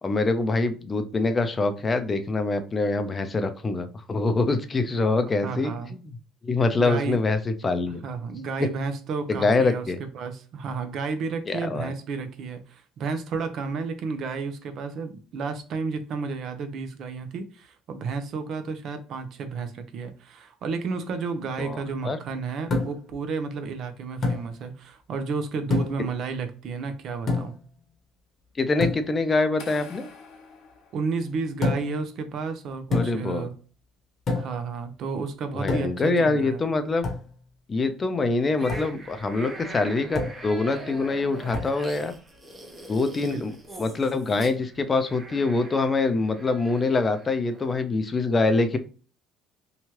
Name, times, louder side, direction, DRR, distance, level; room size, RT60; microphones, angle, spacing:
voice 1, 0.0-6.2 6.4-8.0 8.6-8.7 9.3-10.0 11.5-11.9 21.6-22.2 28.6-30.1 32.9-33.5 35.5-37.0 37.7-42.1 42.9-48.8, left 3 dB, 25° left, 9 dB, 0.5 m, -25 dB
voice 2, 5.4-5.9 6.8-7.2 8.0-27.5 30.9-33.5 34.3-36.6 43.2-43.4, right 4 dB, 60° right, 8 dB, 0.5 m, -32 dB
sound 1, 22.7-23.1 24.2-24.5 25.7-26.1 27.3-27.7 28.8-29.1 31.6-32.0 32.9-33.3 34.3-34.6 35.7-36.1 37.0-37.3 38.7-38.9 40.1-40.5 41.5-41.8, left 3 dB, 45° left, 0.9 m, -27 dB
sound 2, 29.6-31.7, left 4 dB, 70° left, 0.7 m, -46 dB
sound 3, 38.6-47.7, right 1 dB, 20° right, 0.7 m, -43 dB
2.9 x 2.3 x 3.0 m, 0.38 s
supercardioid pair, 100°, 0 cm